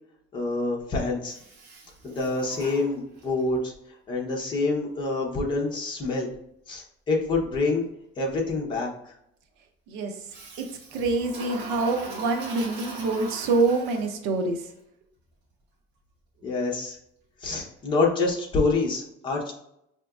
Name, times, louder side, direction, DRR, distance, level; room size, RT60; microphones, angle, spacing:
voice 1, 0.3-1.4 2.0-3.7 4.1-6.3 6.7-7.8 8.2-9.1 16.4-17.0 17.4-19.5, left 3 dB, 20° left, -2 dB, 0.8 m, -26 dB
Toilet flush, 1.3-3.5 10.3-14.4, right 3 dB, 55° right, 0.9 m, -41 dB
voice 2, 9.9-10.2 10.9-14.6, right 3 dB, 90° right, 5 dB, 0.7 m, -26 dB
5.0 x 2.8 x 2.3 m, 0.77 s
cardioid pair, 175°, 21 cm